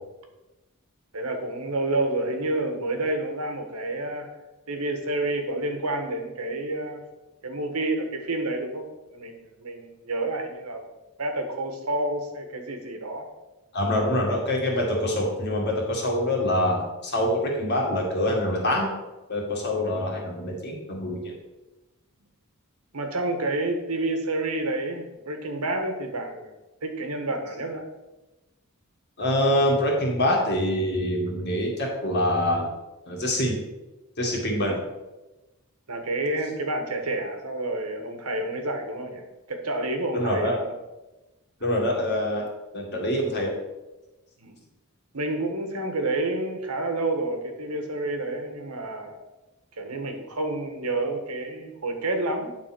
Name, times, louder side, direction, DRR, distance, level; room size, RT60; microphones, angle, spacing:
voice 1, 1.1-4.3 4.7-7.0 7.4-8.8 9.1-10.9 11.2-13.3 22.9-26.5 26.8-27.8 34.6-34.8 35.9-40.7 41.6-41.7 44.4-44.5 45.1-49.2 49.8-52.6, right 2 dB, 85° right, 5 dB, 1.3 m, -29 dB
voice 2, 13.7-18.9 19.3-21.3 29.2-32.7 33.1-33.6 34.2-34.8 40.1-40.6 41.6-42.5 42.7-43.5, left 1 dB, 50° left, -1 dB, 2.1 m, -25 dB
9.1 x 4.1 x 6.0 m, 1.0 s
head